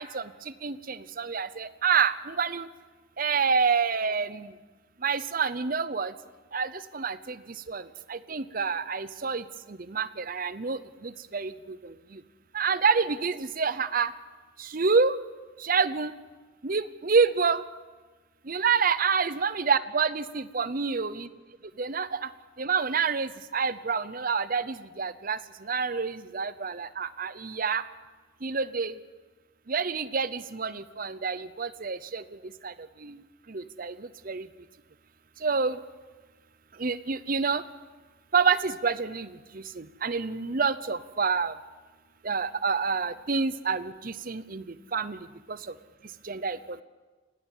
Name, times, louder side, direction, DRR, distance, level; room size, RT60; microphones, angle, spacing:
voice 1, 0.0-2.7 3.2-4.5 5.0-6.1 6.5-12.2 12.5-14.1 14.6-15.2 15.6-16.1 16.6-17.6 18.5-21.3 21.8-22.3 22.6-27.8 28.4-29.0 29.7-34.5 35.4-35.8 36.7-37.6 38.3-41.6 42.2-45.2 45.5-45.7 46.2-46.8, right 5 dB, 45° right, 15 dB, 0.7 m, -28 dB
20.5 x 17.5 x 7.4 m, 1.3 s
head